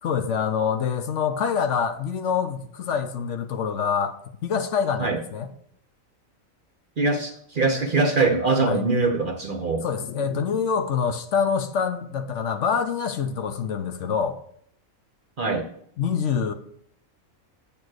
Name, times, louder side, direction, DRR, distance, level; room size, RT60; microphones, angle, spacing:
voice 1, 0.0-4.1 4.4-5.5 8.6-8.8 9.8-14.4 16.0-16.5, left 6 dB, 65° left, 0.9 m, -25 dB
voice 2, 7.0-9.8 15.4-15.7, right 3 dB, 45° right, 0.8 m, -23 dB
8.5 x 4.5 x 6.3 m
omnidirectional pair, 1.4 m